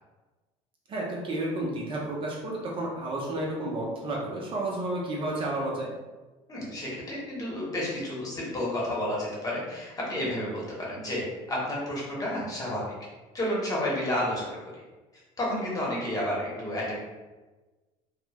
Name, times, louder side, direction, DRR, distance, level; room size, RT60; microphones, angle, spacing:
voice 1, 0.9-5.9, right 1 dB, 40° right, -3 dB, 0.6 m, -31 dB
voice 2, 6.5-12.9 13.3-14.5 15.4-17.0, left 1 dB, 25° left, -5 dB, 1.0 m, -31 dB
3.0 x 2.1 x 2.3 m, 1.2 s
supercardioid pair, 100°, 14 cm